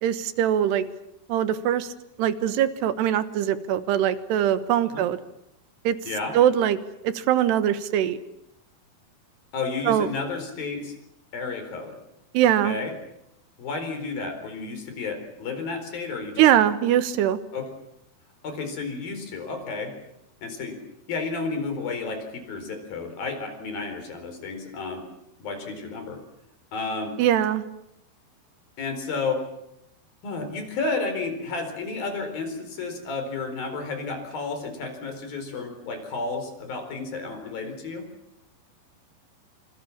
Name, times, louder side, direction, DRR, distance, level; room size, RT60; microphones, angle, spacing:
voice 1, 0.0-0.8 1.3-1.9 2.2-5.2 5.8-6.0 6.3-6.8 7.0-8.2 9.8-10.1 12.3-12.8 16.4-17.4 27.2-27.6, right 10 dB, 90° right, 12 dB, 3.4 m, -22 dB
voice 2, 9.5-10.9 11.3-12.0 12.6-12.9 13.6-16.4 17.5-17.7 18.4-19.9 20.4-20.8 21.1-25.0 25.4-26.2 26.7-27.1 28.8-29.4 30.2-38.1, left 4 dB, 60° left, 6 dB, 6.0 m, -31 dB
26.5 x 26.0 x 7.3 m, 0.82 s
omnidirectional pair, 4.7 m